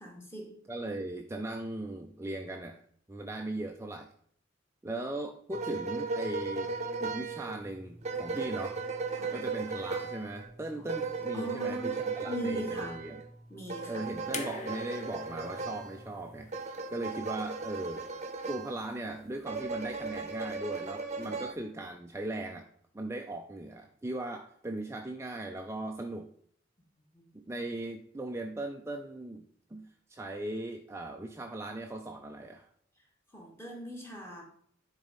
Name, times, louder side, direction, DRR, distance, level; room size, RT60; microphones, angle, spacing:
voice 1, 0.0-0.6 9.2-9.3 11.3-12.0 12.3-12.9 13.5-13.9 27.2-27.3 33.3-34.4, equal, 15° left, -1 dB, 2.1 m, -40 dB
voice 2, 0.6-2.8 3.1-4.1 4.8-6.7 7.0-8.8 9.3-13.2 13.9-16.5 16.9-18.0 18.5-22.7 22.9-26.3 27.3-29.5 29.7-32.7, right 2 dB, 15° right, 4 dB, 0.5 m, -38 dB
sound 1, 5.5-18.9 19.4-21.5, right 4 dB, 35° right, 0.9 m, -37 dB
sound 2, 14.3-17.5 18.7-18.8, left 4 dB, 40° left, 1.1 m, -44 dB
10.5 x 4.1 x 5.1 m, 0.63 s
head